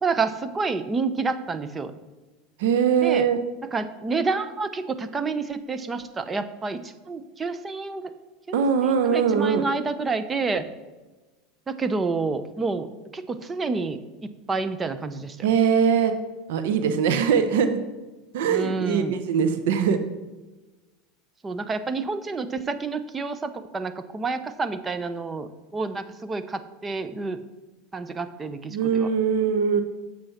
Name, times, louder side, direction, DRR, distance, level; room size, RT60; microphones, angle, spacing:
voice 1, 0.0-1.9 3.0-3.3 3.7-8.0 8.8-10.6 11.7-12.9 13.1-15.5 18.5-19.2 21.4-27.4 27.9-29.1, right 4 dB, 20° right, 11 dB, 0.8 m, -29 dB
voice 2, 2.6-3.4 8.5-9.7 15.4-16.1 16.5-17.8 18.3-20.0 28.7-29.8, right 7 dB, 75° right, 8 dB, 0.8 m, -21 dB
8.0 x 7.1 x 5.8 m, 1.2 s
supercardioid pair, 110°, 0 cm